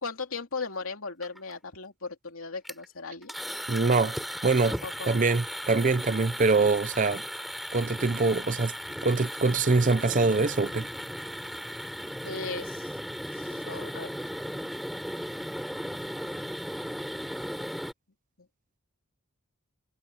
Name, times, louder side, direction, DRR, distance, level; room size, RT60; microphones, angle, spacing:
voice 1, 0.0-3.3 4.8-5.2 12.2-12.9 13.3-14.2 18.4-18.5, left 4 dB, 65° left, 3.0 m, -38 dB
sound 1, 1.2-1.5 2.6-2.9 3.2-17.9, equal, ahead, 4.0 m, -36 dB
voice 2, 3.7-4.2 4.4-4.8 5.1-7.2 7.7-8.7 9.0-10.9, right 3 dB, 35° right, 0.6 m, -24 dB
head